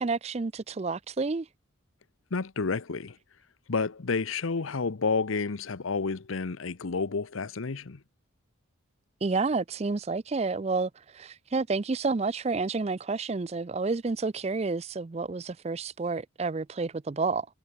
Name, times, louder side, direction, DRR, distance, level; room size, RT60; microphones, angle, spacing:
voice 1, 0.0-1.5 9.2-17.5, right 3 dB, 30° right, 0.4 m, -30 dB
voice 2, 2.3-3.2 3.7-8.0, left 4 dB, 85° left, 0.8 m, -30 dB
head